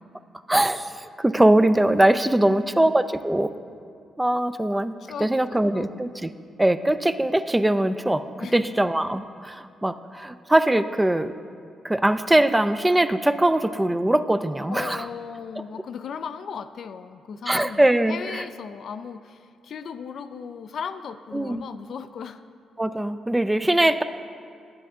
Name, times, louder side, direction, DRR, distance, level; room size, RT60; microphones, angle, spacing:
voice 1, 0.5-3.5 4.2-4.9 5.2-6.3 6.6-8.2 8.5-11.3 11.8-15.1 17.5-18.4 21.3-21.7 22.8-24.0, right 1 dB, 15° right, 11 dB, 0.4 m, -21 dB
voice 2, 2.3-2.9 5.0-5.9 6.8-6.9 8.4-8.9 14.7-22.4, left 6 dB, 65° left, 10 dB, 0.3 m, -37 dB
10.0 x 7.8 x 3.7 m, 2.3 s
supercardioid pair, 55°, 0 cm